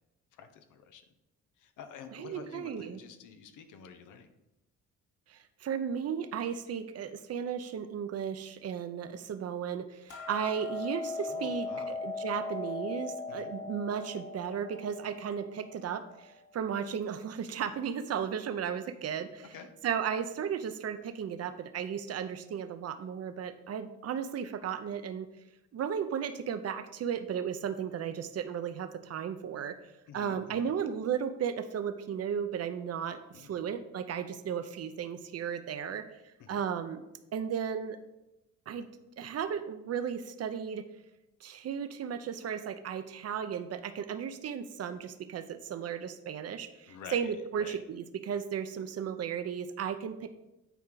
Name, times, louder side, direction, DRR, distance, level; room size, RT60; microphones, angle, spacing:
voice 1, 0.4-1.0 1.6-4.3 11.3-11.9 13.3-13.5 19.4-19.7 30.1-30.7 33.3-33.6 36.4-36.6 46.9-47.8, left 6 dB, 85° left, 8 dB, 0.9 m, -49 dB
voice 2, 2.1-3.0 5.3-19.6 19.8-25.3 25.7-29.8 30.1-36.2 36.5-37.0 37.3-38.0 38.7-38.9 39.2-40.8 41.4-50.3, right 8 dB, 55° right, 10 dB, 0.7 m, -35 dB
Hammer, 10.1-16.3, left 3 dB, 55° left, 3.0 m, -39 dB
9.2 x 4.6 x 4.0 m, 0.94 s
cardioid pair, 90°, 30 cm